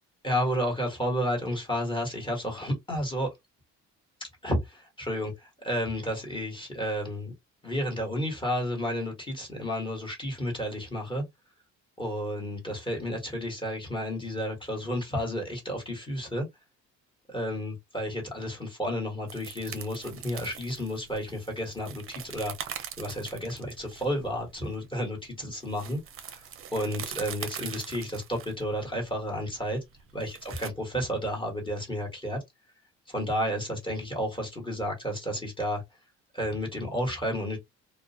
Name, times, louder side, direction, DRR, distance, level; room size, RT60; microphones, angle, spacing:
voice 1, 0.2-3.3 4.4-7.3 7.6-11.2 12.0-16.5 17.3-26.0 26.3-26.4 26.7-29.8 30.1-32.4 33.1-35.8 36.3-37.6, equal, 15° left, 1.2 m, -31 dB
sound 1, 19.3-30.7, right 9 dB, 45° right, 0.5 m, -42 dB
2.4 x 2.0 x 2.6 m
cardioid pair, 105°, 30 cm